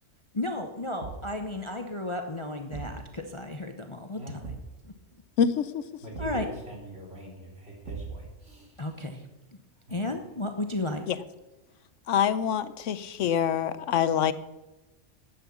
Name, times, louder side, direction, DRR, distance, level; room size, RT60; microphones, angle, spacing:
voice 1, 0.4-4.2 4.8-4.9 6.2-6.5 8.8-9.2 9.9-11.0, left 2 dB, 30° left, 0.8 m, -33 dB
Thump thud, 1.0-1.4 2.7-3.0 4.4-4.8 6.1-6.5 7.8-8.4, right 4 dB, 85° right, 1.9 m, -39 dB
voice 2, 5.4-5.8 11.1-11.2 12.1-14.3, left 8 dB, 80° left, 1.0 m, -25 dB
voice 3, 6.0-8.9, right 1 dB, 55° right, 4.1 m, -43 dB
11.5 x 8.6 x 7.1 m
omnidirectional pair, 1.3 m